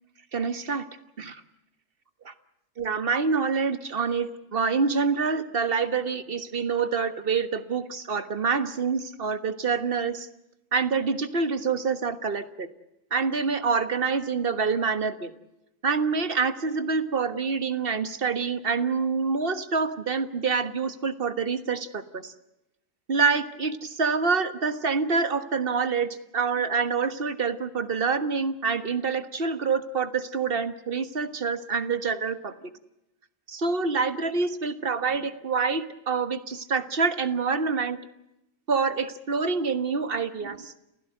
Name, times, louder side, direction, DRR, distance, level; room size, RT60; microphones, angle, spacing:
voice 1, 0.3-0.8 1.2-1.4 2.8-10.3 10.7-12.7 13.1-15.3 15.8-22.3 23.1-32.5 33.5-38.0 38.7-40.7, right 5 dB, 45° right, 11 dB, 1.6 m, -26 dB
29.5 x 16.0 x 7.9 m, 0.88 s
omnidirectional pair, 1.3 m